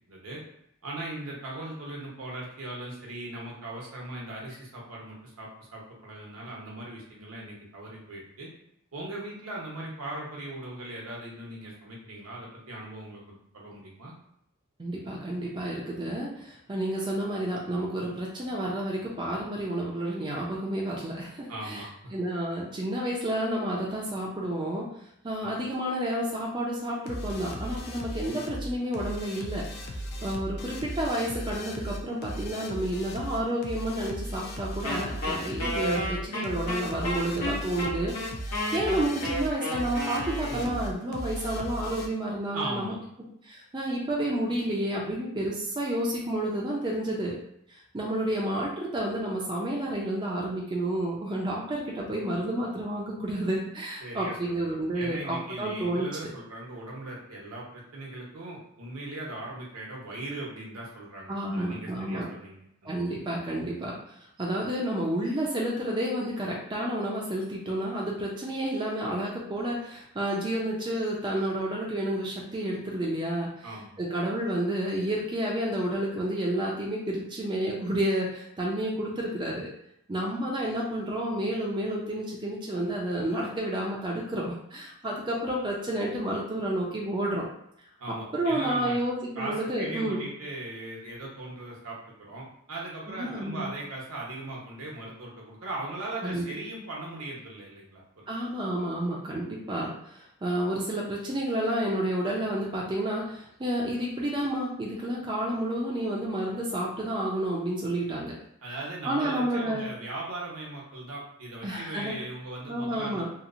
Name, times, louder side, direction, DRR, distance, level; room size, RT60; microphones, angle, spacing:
voice 1, 0.1-0.4 0.8-8.5 8.9-14.1 21.5-22.1 25.4-25.6 40.5-40.7 42.5-43.0 54.0-62.9 73.6-73.9 88.0-89.0 89.4-98.3 108.6-113.3, right 1 dB, 75° right, -3 dB, 0.8 m, -39 dB
voice 2, 14.8-21.8 22.1-24.9 25.2-29.6 30.2-38.1 38.4-42.9 43.4-47.4 47.7-56.1 61.3-62.3 62.8-63.9 64.4-73.7 74.0-79.7 80.1-87.5 88.3-90.2 93.1-93.7 96.2-96.4 98.3-108.3 109.0-109.8 111.6-112.1 112.7-113.3, right 1 dB, 20° right, -3 dB, 0.4 m, -30 dB
sound 1, 27.1-42.1, equal, 45° left, 0.4 m, -37 dB
Wind instrument woodwind instrument, 34.8-40.9, left 1 dB, 75° left, 0.9 m, -32 dB
2.8 x 2.0 x 2.5 m, 0.76 s
head